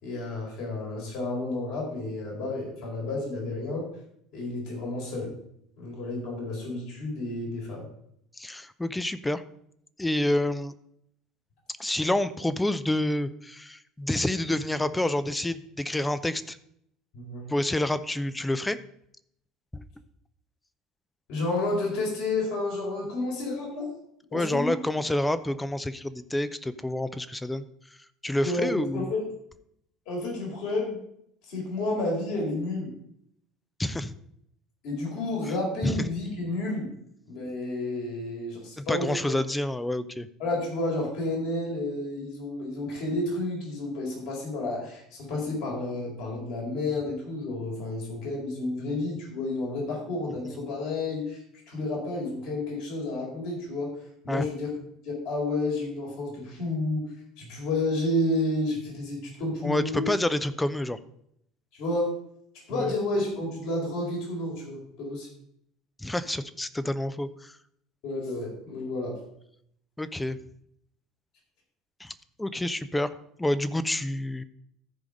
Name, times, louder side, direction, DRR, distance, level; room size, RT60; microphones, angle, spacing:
voice 1, 0.0-3.9 4.3-5.3 5.8-7.8 17.1-17.5 21.3-23.9 24.3-24.7 28.4-29.2 30.1-31.0 31.5-32.9 34.8-36.9 37.3-39.1 40.4-53.9 54.2-54.7 55.0-57.0 57.4-60.1 61.7-62.1 62.7-65.3 68.0-69.2, left 2 dB, 60° left, -2 dB, 4.3 m, -31 dB
voice 2, 8.4-9.4 10.0-10.7 11.8-16.6 17.5-18.8 19.7-19.8 24.3-27.6 28.2-29.1 33.8-34.1 35.8-36.1 38.8-40.3 50.4-50.6 54.3-54.4 59.6-61.0 62.7-62.9 66.0-67.5 70.0-70.4 72.0-72.1 72.4-73.1 73.4-74.4, left 1 dB, 10° left, 13 dB, 0.7 m, -28 dB
14.0 x 4.9 x 5.3 m, 0.72 s
figure-of-eight pair, 65°, 0 cm